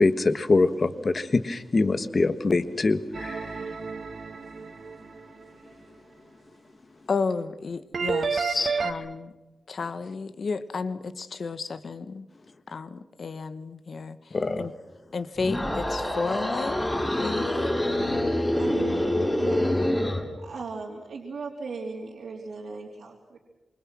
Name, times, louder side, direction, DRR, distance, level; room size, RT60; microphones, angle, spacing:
voice 1, 0.0-3.5 8.5-8.8 14.3-14.6, left 3 dB, 40° left, 11 dB, 1.5 m, -24 dB
sound 1, 3.1-5.2 7.9-8.9, right 5 dB, 65° right, 1.9 m, -30 dB
voice 2, 7.1-9.3 9.7-12.3 12.7-14.7 15.1-16.8 17.1-17.7, left 4 dB, 60° left, 12 dB, 1.4 m, -32 dB
sound 2, 15.3-20.3, left 1 dB, 15° left, 5.8 m, -26 dB
voice 3, 18.6-19.9 20.4-23.4, right 4 dB, 80° right, -2 dB, 3.6 m, -37 dB
27.0 x 24.5 x 6.3 m, 1.1 s
wide cardioid pair, 130°, 0 cm